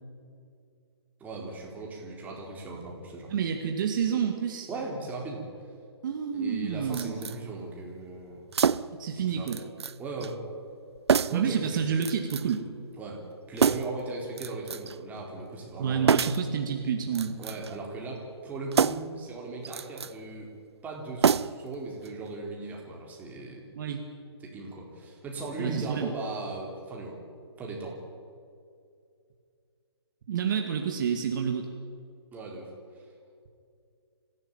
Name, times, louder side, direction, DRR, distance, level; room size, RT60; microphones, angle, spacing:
voice 1, 1.2-3.3 4.7-5.5 6.3-8.4 9.2-9.5 10.0-10.4 11.3-11.8 13.0-13.2 13.5-16.2 17.4-20.5 20.8-23.6 24.4-27.2 27.6-27.9 32.3-32.7, right 3 dB, 10° right, -1 dB, 4.1 m, -38 dB
voice 2, 3.3-4.7 6.0-7.2 9.0-9.6 11.3-12.6 15.8-17.4 23.8-24.0 25.6-26.1 30.3-31.7, right 7 dB, 45° right, 3 dB, 2.2 m, -29 dB
sound 1, 6.9-7.4 8.5-9.0 9.5-10.0 10.2-10.3 11.1-11.5 12.0-12.6 13.6-14.0 14.4-15.0 16.1-16.5 17.1-17.8 18.7-19.2 19.6-20.1 21.2-21.7 22.0-22.1, right 6 dB, 70° right, 0.7 m, -26 dB
25.5 x 15.5 x 9.0 m, 2.4 s
hypercardioid pair, 145°, 14 cm